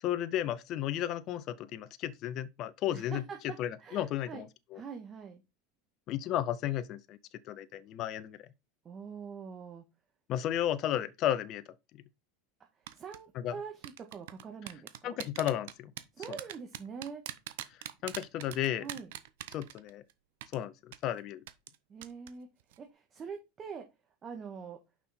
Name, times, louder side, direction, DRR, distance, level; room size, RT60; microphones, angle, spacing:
voice 1, 0.0-4.8 6.1-7.2 7.5-8.4 10.3-11.6 13.3-13.6 15.0-15.9 18.0-18.8 19.5-20.0 20.5-21.4, left 12 dB, 50° left, 0.6 m, -33 dB
voice 2, 2.9-4.5 4.7-5.4 8.8-9.8 12.9-15.2 16.2-17.2 18.8-19.1 21.9-22.5 22.8-23.9 24.2-24.8, right 6 dB, 30° right, 1.5 m, -44 dB
sound 1, 12.9-13.2 13.8-20.1 20.4-20.6 20.9-21.0 21.5-21.8 22.0-22.3 22.6-22.8, right 14 dB, 70° right, 0.8 m, -41 dB
6.0 x 5.6 x 4.3 m
hypercardioid pair, 100°, 0 cm